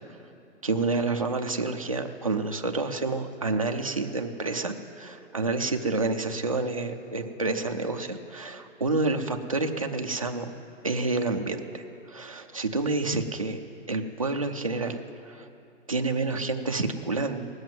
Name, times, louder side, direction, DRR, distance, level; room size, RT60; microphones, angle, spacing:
voice 1, 0.6-10.5 10.8-11.8 12.1-13.6 13.9-15.5 15.9-17.5, right 3 dB, 30° right, 3 dB, 0.4 m, -29 dB
18.0 x 7.9 x 9.0 m, 2.8 s
hypercardioid pair, 175°, 38 cm